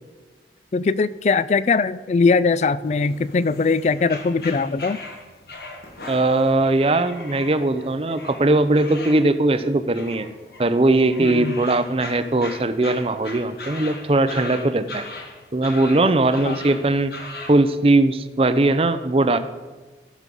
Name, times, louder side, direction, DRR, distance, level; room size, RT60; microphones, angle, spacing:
voice 1, 0.7-5.0 11.2-11.5 16.4-16.6, left 4 dB, 40° left, 17 dB, 0.3 m, -20 dB
sound 1, 2.8-17.6, left 2 dB, 55° left, 1.4 m, -39 dB
voice 2, 6.1-10.3 10.6-15.0 15.5-17.1 17.5-19.4, right 2 dB, 30° right, 11 dB, 0.5 m, -19 dB
14.5 x 6.3 x 5.4 m, 1.3 s
head